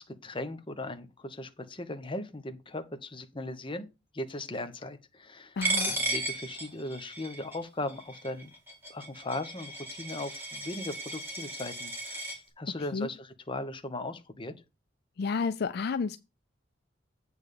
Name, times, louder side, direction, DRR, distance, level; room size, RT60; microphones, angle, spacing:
voice 1, 0.0-3.9 4.1-5.6 5.8-8.5 8.9-14.5, left 2 dB, 30° left, 1.0 m, -38 dB
voice 2, 5.6-5.9 12.9-13.1 15.2-16.2, left 5 dB, 55° left, 0.4 m, -30 dB
Coin (dropping), 5.6-12.4, right 2 dB, 10° right, 2.4 m, -35 dB
8.8 x 3.5 x 6.6 m
head